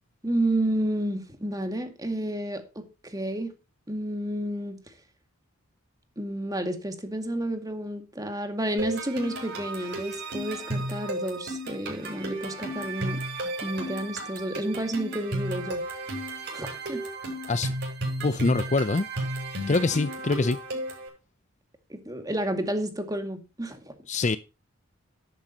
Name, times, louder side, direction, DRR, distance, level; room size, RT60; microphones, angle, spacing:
voice 1, 0.2-3.5 3.9-4.8 6.2-13.2 13.6-15.8 16.5-17.0 21.9-23.9, right 1 dB, 15° right, 2.2 m, -30 dB
sound 1, 8.8-21.1, right 1 dB, 55° right, 7.3 m, -33 dB
voice 2, 18.2-19.1 19.7-20.6 24.1-24.4, left 3 dB, 35° left, 0.5 m, -24 dB
12.5 x 11.5 x 2.9 m
head